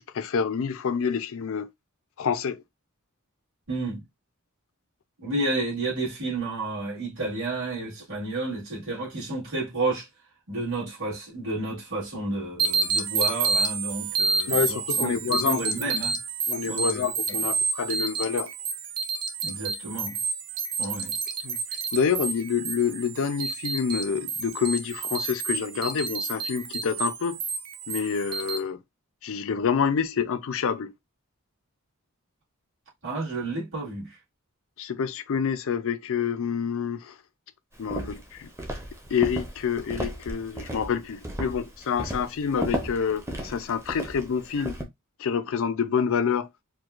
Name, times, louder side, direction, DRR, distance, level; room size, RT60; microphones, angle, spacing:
voice 1, 0.0-1.7 2.2-2.6 14.5-15.9 16.5-18.5 21.4-21.6 21.9-27.4 27.9-28.8 29.2-30.9 34.8-37.2 37.8-38.5 39.1-44.8 45.2-46.5, left 6 dB, 65° left, 0.4 m, -27 dB
voice 2, 3.7-4.0 5.2-10.1 10.5-16.2 16.7-17.0 19.4-20.2 20.8-21.1 33.0-34.2, right 2 dB, 60° right, 2.2 m, -31 dB
sound 1, 12.6-28.6, right 4 dB, 85° right, 0.6 m, -29 dB
Walk footsteps, 37.8-44.8, equal, 15° right, 0.7 m, -35 dB
4.6 x 2.2 x 2.4 m
head